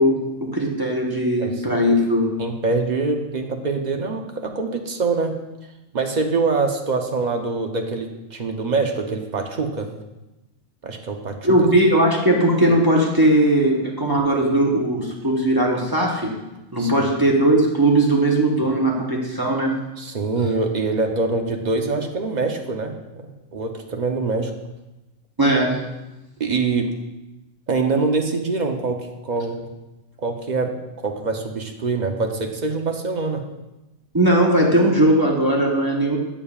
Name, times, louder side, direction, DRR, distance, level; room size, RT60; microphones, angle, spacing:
voice 1, 0.0-2.3 11.4-16.3 16.7-19.7 25.4-25.8 34.1-36.2, right 1 dB, 20° right, -2 dB, 0.8 m, -18 dB
voice 2, 2.4-5.3 5.9-9.9 10.8-11.7 16.8-17.1 20.0-24.5 26.4-26.9 27.7-29.7 30.2-33.4, right 3 dB, 45° right, 4 dB, 0.6 m, -24 dB
8.5 x 6.9 x 2.3 m, 1.0 s
omnidirectional pair, 1.3 m